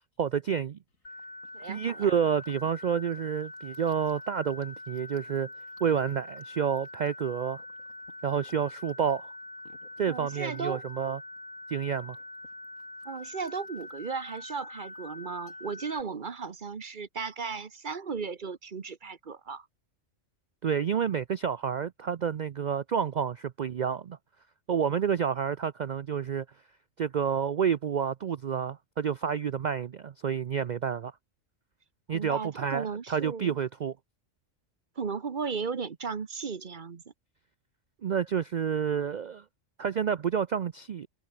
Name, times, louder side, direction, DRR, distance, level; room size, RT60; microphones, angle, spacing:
voice 1, 0.2-0.8 1.7-5.5 5.8-7.6 8.2-9.3 10.0-11.2 11.7-12.2 20.6-24.2 24.7-26.5 27.0-31.1 32.1-34.0 38.0-39.4 39.8-41.1, right 7 dB, 60° right, 0.4 m, -29 dB
sound 1, 0.9-16.7, left 3 dB, 90° left, 4.3 m, -64 dB
sound 2, 1.0-16.0, left 3 dB, 50° left, 3.3 m, -44 dB
voice 2, 1.5-2.1 10.1-10.8 13.0-19.7 32.1-33.6 35.0-37.0, right 5 dB, 40° right, 1.0 m, -36 dB
omnidirectional pair, 1.4 m